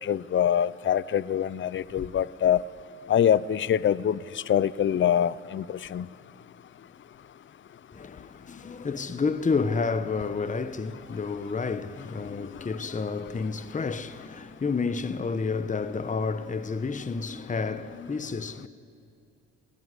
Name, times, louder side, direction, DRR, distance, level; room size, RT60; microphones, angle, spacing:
voice 1, 0.0-2.6 3.1-6.1, left 9 dB, 40° left, 0.7 m, -24 dB
voice 2, 7.9-18.7, left 4 dB, 25° left, 1.1 m, -30 dB
27.0 x 18.5 x 9.8 m
cardioid pair, 90°, 30 cm